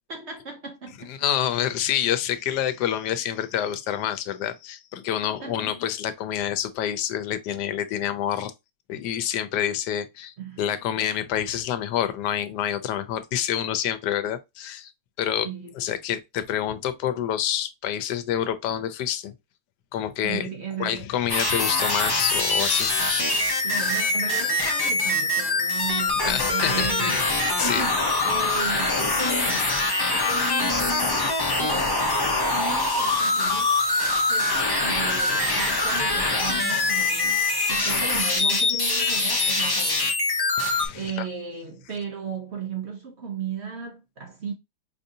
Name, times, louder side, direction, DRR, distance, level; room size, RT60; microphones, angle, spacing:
voice 1, 0.1-1.1 5.2-5.8 10.4-10.6 15.4-15.8 20.2-21.0 23.6-27.3 27.6-29.7 30.0-31.3 31.6-33.8 34.3-40.1 40.9-44.5, right 6 dB, 55° right, 0.8 m, -35 dB
voice 2, 1.1-8.5 8.9-14.9 15.2-15.5 15.7-19.3 19.9-20.5 20.8-23.0 26.2-27.3 27.6-27.9 40.6-41.3, left 10 dB, 85° left, 1.2 m, -27 dB
sound 1, 21.3-40.9, left 2 dB, 25° left, 0.4 m, -23 dB
4.9 x 2.6 x 2.6 m
omnidirectional pair, 1.8 m